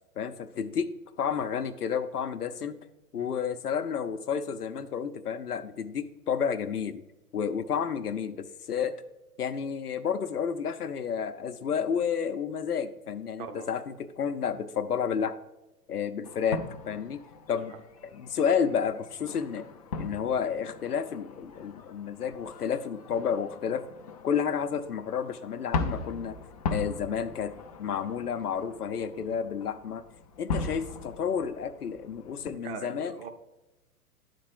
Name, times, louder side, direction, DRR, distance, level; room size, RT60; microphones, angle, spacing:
voice 1, 0.2-0.9 1.2-2.8 3.1-7.0 7.3-8.9 9.4-15.4 15.9-17.2 17.5-17.7 18.0-19.6 20.0-23.8 24.2-26.4 26.7-27.5 27.8-30.0 30.4-33.2, left 7 dB, 75° left, 9 dB, 0.7 m, -31 dB
sound 1, 16.2-32.5, left 4 dB, 25° left, 0.4 m, -39 dB
voice 2, 32.6-33.3, right 6 dB, 35° right, 6 dB, 0.9 m, -41 dB
11.0 x 4.3 x 4.8 m, 1.0 s
figure-of-eight pair, 105°, 46 cm